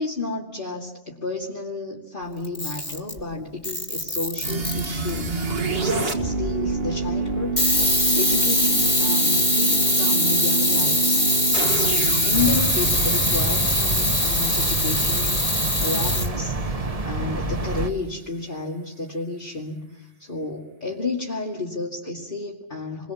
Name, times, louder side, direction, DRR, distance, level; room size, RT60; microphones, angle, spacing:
voice 1, 0.0-5.4 5.7-7.5 7.9-11.2 12.2-15.4 15.8-23.1, left 3 dB, 45° left, -4 dB, 2.7 m, -31 dB
Camera, 2.4-3.2 3.6-5.2 7.6-16.3, left 1 dB, 20° left, 2.5 m, -22 dB
sound 1, 4.4-15.4, right 3 dB, 55° right, 2.1 m, -27 dB
sound 2, 12.3-17.9, right 2 dB, 30° right, 1.3 m, -27 dB
29.0 x 22.5 x 7.2 m, 0.92 s
omnidirectional pair, 1.2 m